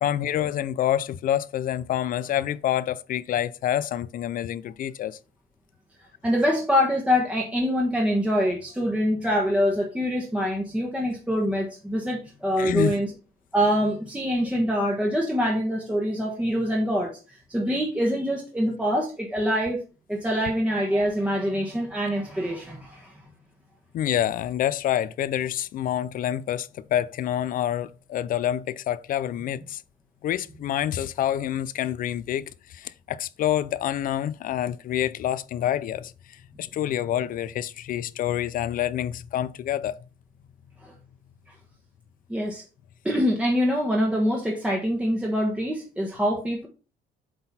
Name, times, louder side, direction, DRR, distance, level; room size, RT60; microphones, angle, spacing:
voice 1, 0.0-5.2 12.6-13.0 23.9-29.8 30.2-40.0, left 11 dB, 55° left, 0.5 m, -27 dB
voice 2, 6.2-13.1 13.5-19.8 20.1-23.1 40.8-40.9 42.3-42.6 43.0-46.7, equal, 5° right, 1.3 m, -25 dB
7.8 x 4.0 x 4.2 m
cardioid pair, 110°, 17 cm